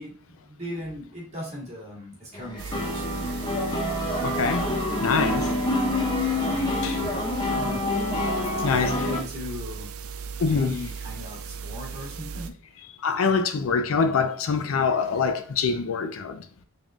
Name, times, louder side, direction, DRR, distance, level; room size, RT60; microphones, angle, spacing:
voice 1, 0.0-3.6 4.0-4.3 6.6-7.0 7.5-7.9 8.6-10.0 10.4-12.6, left 1 dB, 30° right, 1.6 m, -38 dB
sound 1, 2.3-9.2, left 2 dB, 20° left, 0.7 m, -27 dB
sound 2, 2.6-12.5, right 6 dB, 85° right, 0.4 m, -37 dB
voice 2, 4.2-4.6 5.0-5.5 6.8-7.2 8.6-8.9 10.4-10.7 13.0-16.4, left 5 dB, 75° left, 0.4 m, -24 dB
3.7 x 3.7 x 2.3 m
head